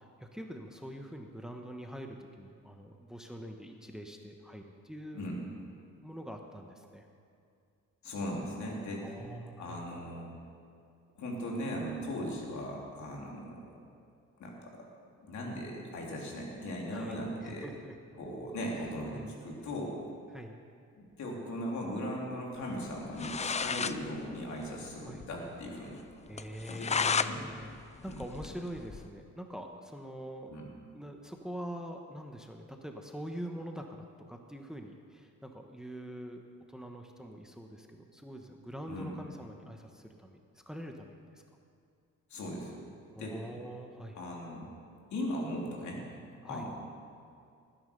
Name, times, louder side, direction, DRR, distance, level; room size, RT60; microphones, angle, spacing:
voice 1, 0.0-5.2 6.0-7.1 9.0-9.8 16.9-17.9 18.7-18.8 19.1-19.3 20.3-20.5 25.0-25.2 26.3-30.6 30.9-36.4 36.7-40.4 40.7-41.4 43.1-44.2 46.4-46.7, equal, ahead, 3 dB, 1.2 m, -44 dB
voice 2, 8.0-9.1 9.6-10.3 11.2-13.8 14.4-14.7 15.2-17.7 18.2-20.0 21.0-26.0 26.7-27.4 28.1-28.2 30.5-30.7 38.9-39.1 42.3-42.8 43.2-43.4 44.1-44.7 45.1-46.0 46.4-46.7, equal, 70° left, -2 dB, 3.6 m, -38 dB
sound 1, 22.9-23.0 23.2-24.0 24.3-24.4 24.7-24.8 25.2-25.3 25.7-25.8 26.4-27.3 27.7-29.1, left 5 dB, 20° left, 0.5 m, -32 dB
19.5 x 10.0 x 5.4 m, 2.4 s
cardioid pair, 90°, 30 cm